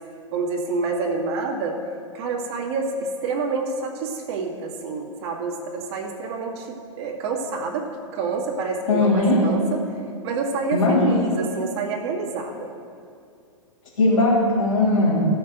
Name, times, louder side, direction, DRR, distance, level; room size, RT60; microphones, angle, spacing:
voice 1, 0.3-1.8 2.1-9.8 10.2-12.7, right 4 dB, 50° right, 0 dB, 2.1 m, -27 dB
voice 2, 8.9-9.4 10.7-11.2 14.0-15.2, left 2 dB, 75° left, -9 dB, 3.4 m, -19 dB
14.5 x 6.8 x 6.8 m, 2.4 s
hypercardioid pair, 115°, 17 cm